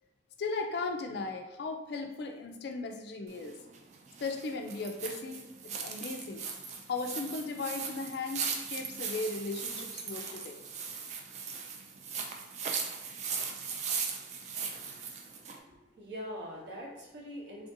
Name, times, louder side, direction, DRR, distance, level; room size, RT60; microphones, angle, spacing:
voice 1, 0.4-3.6 4.2-6.4 6.9-10.6, left 3 dB, 60° left, 5 dB, 0.3 m, -37 dB
sound 1, 3.3-15.6, right 6 dB, 40° right, 0.3 m, -38 dB
voice 2, 15.7-17.7, equal, 65° right, -3 dB, 0.9 m, -43 dB
3.3 x 2.5 x 2.6 m, 1.0 s
head